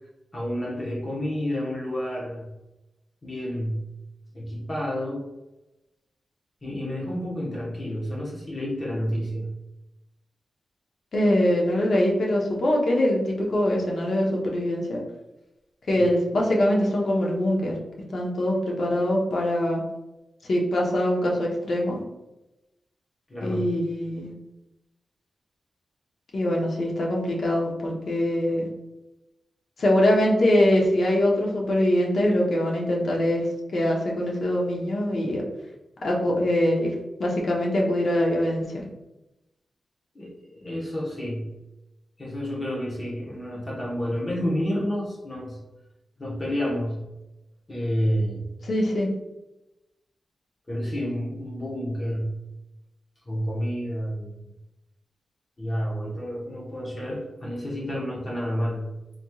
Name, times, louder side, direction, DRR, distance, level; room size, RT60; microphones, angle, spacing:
voice 1, 0.3-2.5 3.2-3.9 4.3-5.2 6.6-9.6 15.9-16.0 23.3-23.7 40.1-41.5 42.2-45.6 46.2-47.1 47.7-48.4 50.7-52.4 53.3-54.4 55.6-59.0, equal, 30° left, -5 dB, 1.1 m, -30 dB
voice 2, 11.1-15.0 15.9-17.7 18.1-19.8 20.5-22.0 23.4-24.3 26.3-28.6 29.8-33.4 33.7-35.4 36.0-36.9 37.2-38.8 48.6-49.1, left 1 dB, 60° left, -1 dB, 0.8 m, -23 dB
4.0 x 3.0 x 2.3 m, 0.98 s
wide cardioid pair, 120°, 0 cm